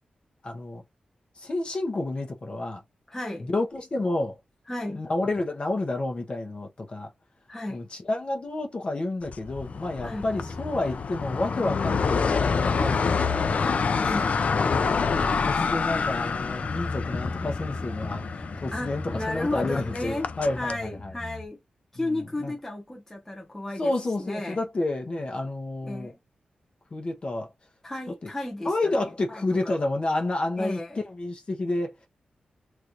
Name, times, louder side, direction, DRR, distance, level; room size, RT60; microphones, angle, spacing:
voice 1, 0.4-0.8 1.4-2.8 3.4-4.4 4.9-7.1 7.7-13.8 14.6-15.1 15.4-21.1 22.0-22.5 23.8-26.1 26.9-27.5 28.6-30.8 31.1-31.9, left 2 dB, 40° left, 1.0 m, -30 dB
voice 2, 3.1-3.5 4.7-5.0 7.5-7.8 10.0-10.3 14.0-14.4 18.7-20.3 20.6-21.6 21.9-23.9 24.2-24.6 25.8-26.2 27.8-28.9 29.3-29.7 30.6-31.0, left 1 dB, 15° left, 1.0 m, -34 dB
sound 1, 9.3-20.8, left 5 dB, 55° left, 0.4 m, -27 dB
sound 2, 10.3-12.9 13.1-13.5 13.7-13.9 16.4-21.5, left 2 dB, 15° right, 0.8 m, -39 dB
3.2 x 2.6 x 3.0 m
wide cardioid pair, 105°, 3 cm